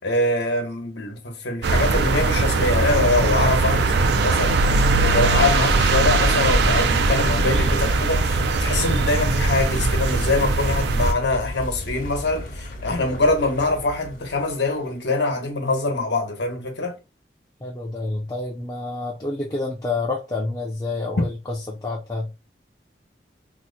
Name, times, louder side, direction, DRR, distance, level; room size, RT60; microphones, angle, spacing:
voice 1, 0.0-17.0, left 2 dB, 80° left, 1.0 m, -24 dB
sound 1, 1.6-11.1, right 3 dB, 70° right, 0.4 m, -20 dB
sound 2, 4.0-14.8, equal, 50° left, 0.8 m, -30 dB
voice 2, 17.6-22.3, left 2 dB, 20° left, 0.5 m, -28 dB
2.8 x 2.1 x 3.9 m
head